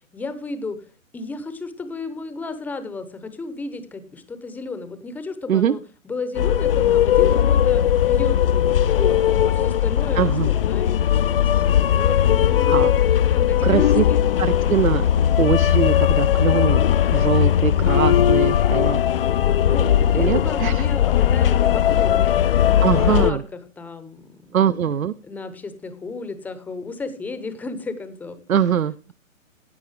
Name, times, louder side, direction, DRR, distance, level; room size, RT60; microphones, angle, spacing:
voice 1, 0.1-0.8 1.1-5.8 6.0-12.9 13.3-14.2 19.4-19.9 20.1-22.7 23.0-23.4 23.8-24.8 25.3-28.4, left 3 dB, 5° left, 11 dB, 0.7 m, -33 dB
sound 1, 6.3-23.3, left 10 dB, 45° left, 0.4 m, -18 dB
voice 2, 10.2-10.5 12.7-12.9 13.6-14.0 14.4-15.1 15.4-19.3 19.8-19.9 20.1-20.9 22.8-23.4 24.5-25.1 28.5-29.1, right 9 dB, 85° right, 14 dB, 0.6 m, -22 dB
15.5 x 8.4 x 3.3 m, 0.35 s
figure-of-eight pair, 130°, 40 cm